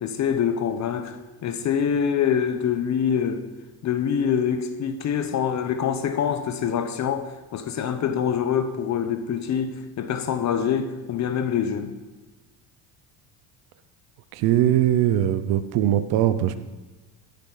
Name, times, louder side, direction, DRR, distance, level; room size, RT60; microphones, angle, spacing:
voice 1, 0.0-1.1 1.4-3.4 3.8-11.9, left 8 dB, 45° left, 9 dB, 1.0 m, -25 dB
voice 2, 14.3-16.6, right 12 dB, 70° right, 11 dB, 0.8 m, -21 dB
13.5 x 10.5 x 4.0 m, 1.2 s
cardioid pair, 130°, 38 cm